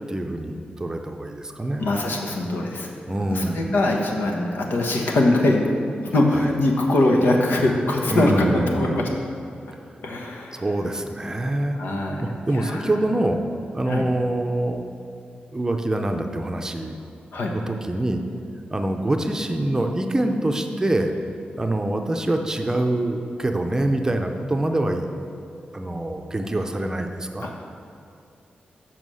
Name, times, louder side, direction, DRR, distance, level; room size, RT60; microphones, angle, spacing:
voice 1, 0.1-1.9 3.1-3.7 8.1-9.1 10.5-11.8 12.2-13.4 13.7-14.9 15.5-17.0 17.5-18.2 18.7-21.1 21.6-25.1 25.7-27.5, right 1 dB, 20° right, 4 dB, 0.6 m, -25 dB
voice 2, 1.8-2.9 3.3-5.7 6.0-9.1 9.7-9.8 10.0-10.7 11.7-12.2 12.5-12.9 13.9-14.1 17.3-17.5 27.4-27.6, left 1 dB, 85° left, 0 dB, 1.2 m, -22 dB
7.3 x 5.9 x 6.3 m, 2.5 s
wide cardioid pair, 125°, 3 cm